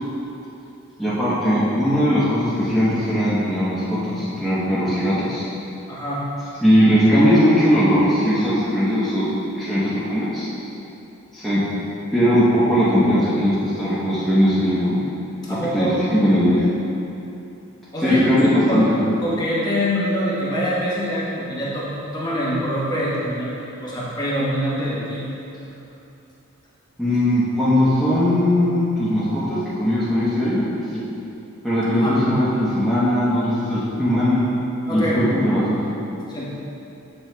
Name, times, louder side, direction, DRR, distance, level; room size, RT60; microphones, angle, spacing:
voice 1, 1.0-5.4 6.6-9.3 9.5-10.5 11.3-11.6 12.1-15.0 15.7-16.6 18.0-19.0 27.0-30.6 30.9-31.0 31.6-34.4 34.9-35.8, equal, ahead, -13 dB, 0.9 m, -19 dB
voice 2, 5.9-6.2 15.4-16.0 17.9-18.4 18.7-18.9 19.2-25.3 31.9-32.2 34.9-35.2 36.3-36.5, equal, 20° left, -7 dB, 1.1 m, -25 dB
7.6 x 7.4 x 2.2 m, 2.9 s
head